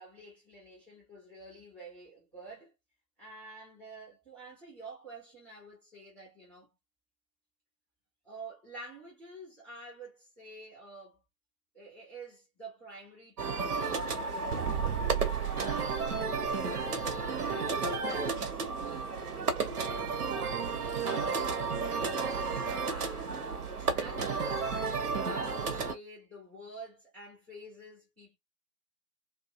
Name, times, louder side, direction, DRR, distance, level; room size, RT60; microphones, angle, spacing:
voice 1, 0.0-2.7 3.2-6.7 8.2-11.2 11.7-17.0 17.5-22.3 22.8-24.6 25.2-28.4, right 2 dB, 5° right, 0.3 m, -49 dB
sound 1, 13.4-25.9, right 4 dB, 75° right, 0.9 m, -32 dB
sound 2, 14.5-17.2, right 11 dB, 55° right, 0.6 m, -35 dB
2.5 x 2.3 x 2.5 m
figure-of-eight pair, 110°, 46 cm